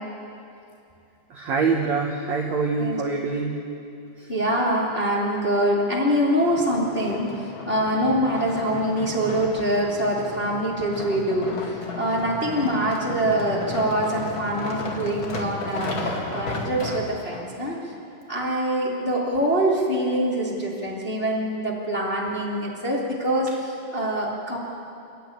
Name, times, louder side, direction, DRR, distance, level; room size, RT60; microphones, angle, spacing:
voice 1, 1.3-3.6 4.2-4.3, right 4 dB, 70° right, 1 dB, 1.6 m, -25 dB
voice 2, 4.3-7.3 7.7-17.9 18.3-24.6, right 1 dB, 20° left, -4 dB, 1.9 m, -24 dB
sound 1, 6.4-17.4 18.1-18.2, left 2 dB, 45° left, 1.6 m, -34 dB
29.5 x 12.5 x 9.8 m, 2.6 s
omnidirectional pair, 5.5 m